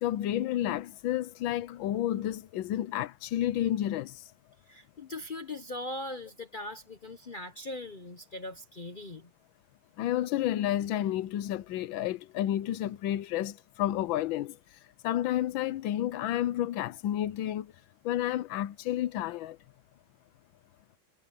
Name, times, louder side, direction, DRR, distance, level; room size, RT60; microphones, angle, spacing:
voice 1, 0.0-4.2 10.0-14.6 15.0-17.7 18.0-19.6, left 12 dB, 85° left, 1.5 m, -30 dB
voice 2, 4.7-9.3, left 2 dB, 50° left, 0.6 m, -40 dB
omnidirectional pair, 2.1 m